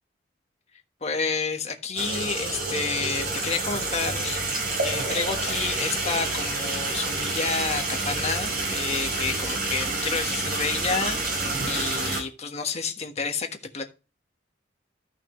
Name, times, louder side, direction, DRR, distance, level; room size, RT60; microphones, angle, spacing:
voice 1, 1.0-13.5 13.7-13.8, left 4 dB, 35° left, 1.3 m, -30 dB
sound 1, 2.0-12.2, right 2 dB, 55° right, 5.0 m, -28 dB
14.0 x 5.8 x 3.1 m
head